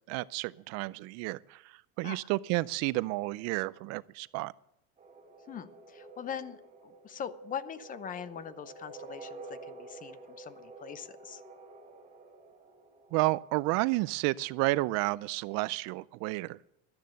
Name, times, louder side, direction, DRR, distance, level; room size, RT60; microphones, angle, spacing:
voice 1, 0.1-4.5 13.1-16.6, right 21 dB, 55° right, 0.4 m, -31 dB
sound 1, 5.0-13.6, right 3 dB, 20° right, 3.2 m, -50 dB
voice 2, 5.5-6.6 6.8-11.4, left 8 dB, 25° left, 0.7 m, -42 dB
12.0 x 10.5 x 6.5 m
supercardioid pair, 135°, 30 cm